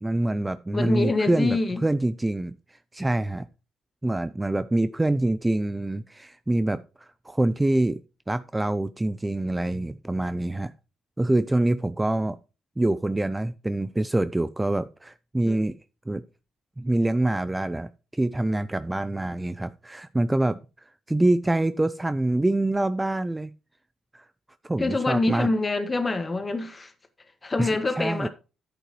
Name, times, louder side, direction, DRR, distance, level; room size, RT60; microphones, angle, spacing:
voice 1, 0.0-2.5 2.9-3.5 4.0-8.0 8.3-10.7 11.2-12.4 12.8-15.7 16.1-16.2 16.8-20.6 21.1-23.5 24.1-24.3 24.6-25.5 27.6-28.3, right 1 dB, 15° right, 0.4 m, -25 dB
voice 2, 0.7-1.8 15.5-15.6 24.8-26.9 27.4-28.3, left 3 dB, 25° left, 1.6 m, -26 dB
9.9 x 8.3 x 3.1 m
cardioid pair, 90°, 0 cm